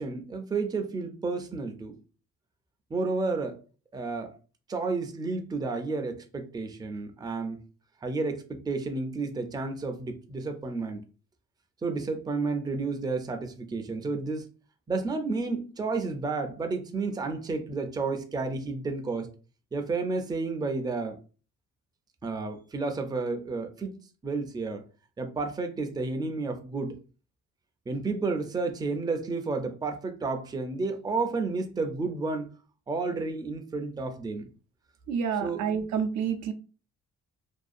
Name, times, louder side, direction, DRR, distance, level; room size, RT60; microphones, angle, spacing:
voice 1, 0.0-1.9 2.9-3.6 3.9-4.4 4.7-7.6 8.0-11.0 11.8-14.5 14.9-19.3 19.7-21.2 22.2-24.0 24.2-24.8 25.2-26.9 27.9-32.5 32.9-34.5 35.4-35.7, right 3 dB, 15° right, 0.4 m, -31 dB
voice 2, 35.1-36.5, right 7 dB, 70° right, 0.5 m, -28 dB
2.6 x 2.2 x 2.4 m
cardioid pair, 90°, 30 cm